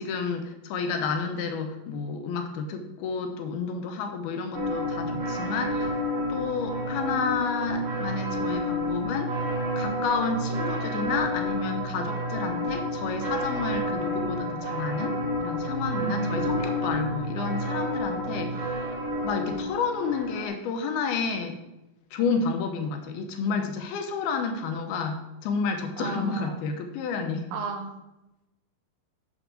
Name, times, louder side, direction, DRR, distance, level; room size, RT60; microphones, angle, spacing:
voice 1, 0.0-6.0 6.3-9.4 9.8-18.9 19.2-21.6 22.1-27.5, left 5 dB, 80° left, 5 dB, 2.7 m, -30 dB
sound 1, 4.5-20.5, equal, 50° right, 4.4 m, -30 dB
voice 2, 16.0-16.4 26.0-26.6 27.5-28.0, right 3 dB, 80° right, 5 dB, 2.9 m, -33 dB
8.1 x 7.0 x 3.8 m, 0.94 s
omnidirectional pair, 4.5 m